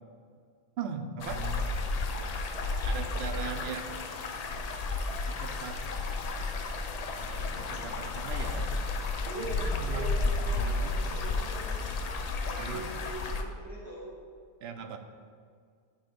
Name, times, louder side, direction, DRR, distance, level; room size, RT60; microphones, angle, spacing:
voice 1, 0.8-1.7 2.8-4.0 5.2-5.8 7.2-8.7 9.4-10.0 10.4-11.2 12.6-12.8 14.6-15.0, right 6 dB, 85° right, 7 dB, 0.9 m, -39 dB
sound 1, 1.2-13.4, left 3 dB, 55° left, 0.5 m, -32 dB
voice 2, 9.2-12.0 12.4-14.1, right 1 dB, 75° left, -10 dB, 2.0 m, -42 dB
8.1 x 3.5 x 5.1 m, 2.1 s
omnidirectional pair, 1.0 m